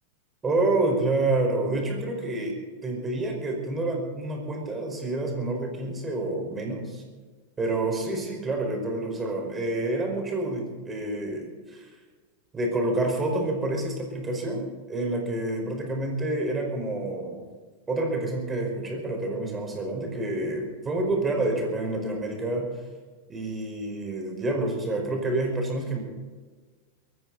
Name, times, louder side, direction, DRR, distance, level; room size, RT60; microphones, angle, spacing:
voice 1, 0.4-2.5 2.8-7.0 7.6-11.9 12.5-17.4 17.9-22.7 23.3-26.0, right 2 dB, 15° right, 2 dB, 4.8 m, -28 dB
22.5 x 14.5 x 4.1 m, 1.4 s
figure-of-eight pair, 90°, 0 cm